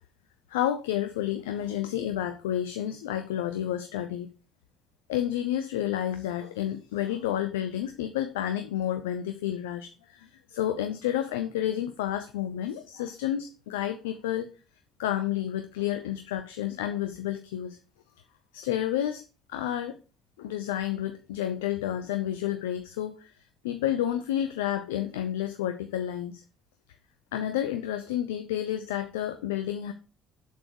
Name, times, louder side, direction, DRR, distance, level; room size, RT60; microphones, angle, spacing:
voice 1, 0.5-4.3 5.1-14.5 15.0-17.8 18.5-19.2 19.5-20.0 20.4-23.3 23.6-26.4 27.3-29.9, left 11 dB, 80° left, 8 dB, 0.6 m, -30 dB
7.4 x 7.3 x 4.6 m, 0.34 s
hypercardioid pair, 55°, 0 cm